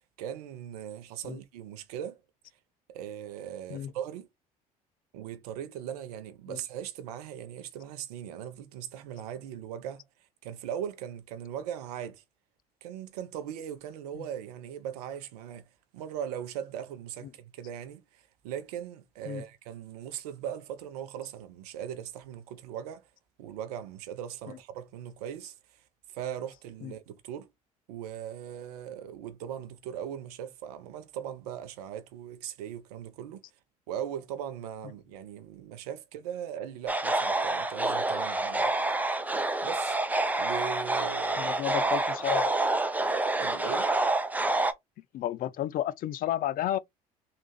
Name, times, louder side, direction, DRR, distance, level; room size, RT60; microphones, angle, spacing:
voice 1, 0.0-2.2 2.9-4.3 5.1-10.0 10.4-12.2 12.8-15.7 15.9-23.1 23.4-25.8 26.1-27.5 27.9-33.4 33.9-38.7 39.6-40.0 40.4-41.6 43.4-43.9, right 9 dB, 80° right, 0.6 m, -39 dB
sound 1, 36.9-44.7, right 2 dB, 10° right, 0.6 m, -28 dB
voice 2, 41.4-42.5 45.1-46.8, left 12 dB, 45° left, 0.4 m, -31 dB
3.2 x 2.5 x 3.1 m
hypercardioid pair, 60°, 20 cm